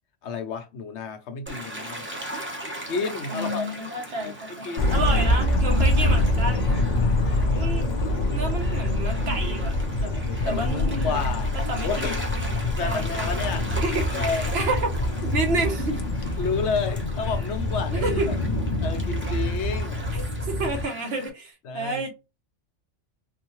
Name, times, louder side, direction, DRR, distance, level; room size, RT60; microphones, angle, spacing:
voice 1, 0.2-2.1 2.9-3.8 4.2-4.4 4.6-4.9 7.7-8.3 10.1-11.6 11.8-12.2 12.8-14.5 16.4-18.4 18.8-20.1 21.6-22.1, left 5 dB, 70° left, 0.9 m, -31 dB
Gull seagull / Waves surf, 1.5-21.3, right 1 dB, 10° right, 0.8 m, -38 dB
voice 2, 3.3-6.7 7.6-7.9 8.3-10.1 10.4-11.3 11.7-12.1 12.8-13.3 13.8-14.9 15.2-16.0 17.9-18.3 20.1-22.1, right 2 dB, 60° right, 1.1 m, -30 dB
sound 1, 4.8-20.8, left 1 dB, 45° left, 0.6 m, -25 dB
3.8 x 2.2 x 2.9 m
omnidirectional pair, 1.2 m